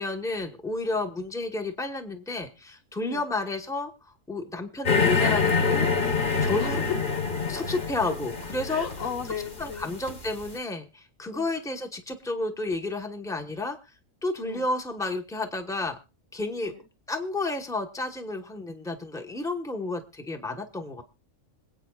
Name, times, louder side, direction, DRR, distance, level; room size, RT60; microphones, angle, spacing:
voice 1, 0.0-6.9 7.5-9.0 9.6-13.8 14.2-16.0 16.3-16.7 17.1-21.0, left 2 dB, 5° left, 4 dB, 1.1 m, -31 dB
sound 1, 4.9-10.5, left 5 dB, 40° left, 1.4 m, -26 dB
voice 2, 8.7-9.9 11.3-11.5 14.4-14.6 16.6-16.8, left 6 dB, 75° left, 6 dB, 1.6 m, -36 dB
26.0 x 8.7 x 2.4 m, 0.29 s
omnidirectional pair, 1.4 m